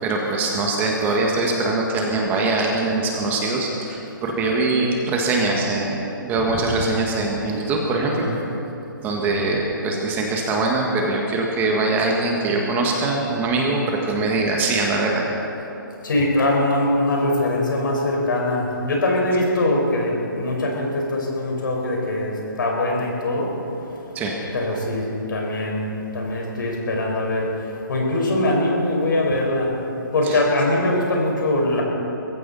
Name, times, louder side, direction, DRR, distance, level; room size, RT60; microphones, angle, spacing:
voice 1, 0.0-8.3 9.0-15.3 24.1-24.3 30.2-30.4, right 2 dB, 15° right, 0 dB, 1.7 m, -22 dB
voice 2, 8.0-8.5 16.0-23.6 23.9-24.0 24.5-29.8 30.1-31.8, left 1 dB, 65° left, -1 dB, 4.9 m, -22 dB
22.0 x 15.5 x 4.2 m, 3.0 s
hypercardioid pair, 150°, 11 cm